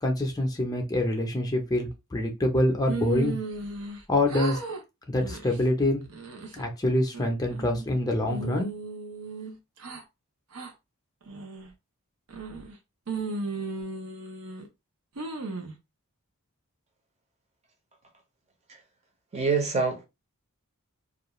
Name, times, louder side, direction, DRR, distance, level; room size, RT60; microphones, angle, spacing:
voice 1, 0.0-3.4 4.1-4.6 5.1-6.0 6.5-8.7, left 1 dB, 15° left, 0.5 m, -26 dB
sound 1, 2.9-4.0 4.3-4.8 5.2-5.6 6.1-6.6 7.1-7.9 8.3-10.0 10.5-10.7 11.3-11.7 12.3-12.7 13.1-14.7 15.2-15.7, right 4 dB, 85° right, 0.7 m, -35 dB
voice 2, 19.3-20.1, right 4 dB, 30° right, 0.7 m, -25 dB
2.4 x 2.3 x 2.9 m
head